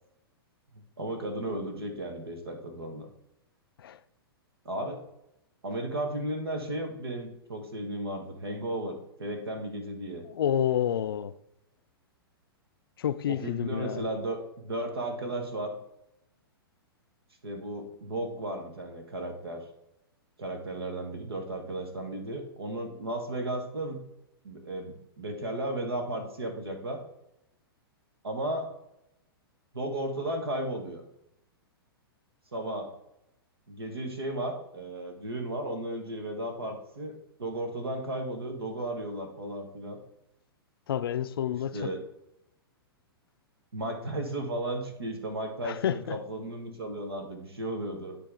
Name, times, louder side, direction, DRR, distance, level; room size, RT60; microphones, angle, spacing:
voice 1, 1.0-3.1 4.6-5.0 5.6-10.3 13.3-15.7 17.4-19.6 20.4-24.0 24.4-27.0 28.2-28.7 29.7-31.0 32.5-32.9 33.7-40.0 41.7-42.0 43.7-48.2, right 1 dB, 80° right, 1.7 m, -34 dB
voice 2, 10.3-11.4 13.0-14.0 40.9-41.9 45.6-46.2, left 10 dB, 65° left, 0.4 m, -29 dB
10.0 x 3.4 x 4.9 m
figure-of-eight pair, 110°, 13 cm